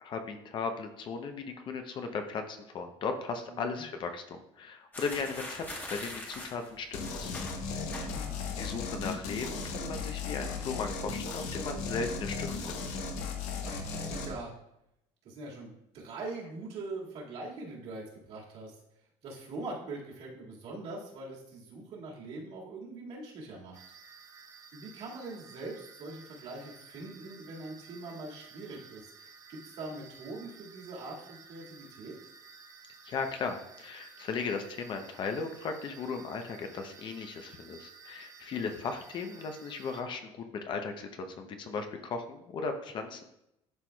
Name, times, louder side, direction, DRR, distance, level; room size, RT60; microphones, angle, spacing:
voice 1, 0.0-7.3 7.9-8.1 8.6-12.8 33.0-43.2, left 4 dB, 40° left, 6 dB, 0.7 m, -37 dB
voice 2, 3.5-3.8 8.0-8.6 13.7-14.5 15.2-18.7 19.2-23.8 24.7-32.2, right 2 dB, 55° right, -3 dB, 2.0 m, -43 dB
sound 1, 4.9-8.5 8.7-9.1 9.4-10.0, left 1 dB, 15° left, 1.1 m, -43 dB
sound 2, 6.9-14.3, left 4 dB, 80° left, 0.9 m, -36 dB
sound 3, 23.7-40.0, right 5 dB, 30° right, 0.7 m, -54 dB
11.0 x 4.6 x 2.3 m, 0.82 s
cardioid pair, 145°, 12 cm